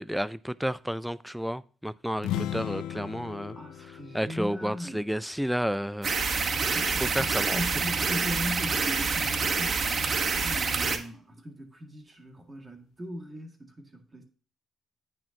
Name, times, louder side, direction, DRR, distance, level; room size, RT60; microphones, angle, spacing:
voice 1, 0.0-3.6 4.1-6.2 6.7-7.6, equal, ahead, 0.4 m, -31 dB
sound 1, 2.2-5.9, left 11 dB, 90° left, 0.4 m, -37 dB
voice 2, 3.5-5.1 6.5-14.2, equal, 25° right, 2.0 m, -39 dB
sound 2, 6.0-11.0, right 4 dB, 45° right, 1.2 m, -27 dB
9.5 x 7.6 x 2.8 m
cardioid pair, 90°, 0 cm